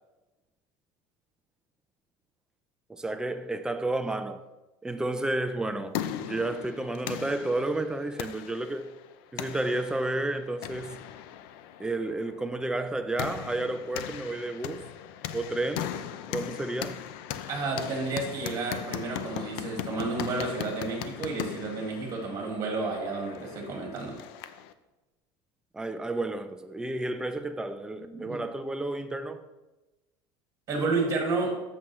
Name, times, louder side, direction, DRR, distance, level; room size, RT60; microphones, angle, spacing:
voice 1, 2.9-4.4 4.8-8.9 9.3-11.0 11.8-14.8 15.3-15.9 16.3-17.0 25.7-29.4, right 2 dB, 5° right, 0.4 m, -31 dB
sound 1, 5.5-24.7, left 11 dB, 75° left, 0.5 m, -39 dB
voice 2, 17.5-24.2 28.0-28.4 30.7-31.5, right 3 dB, 30° right, 2.0 m, -31 dB
8.2 x 7.2 x 3.1 m
cardioid pair, 155°, 12 cm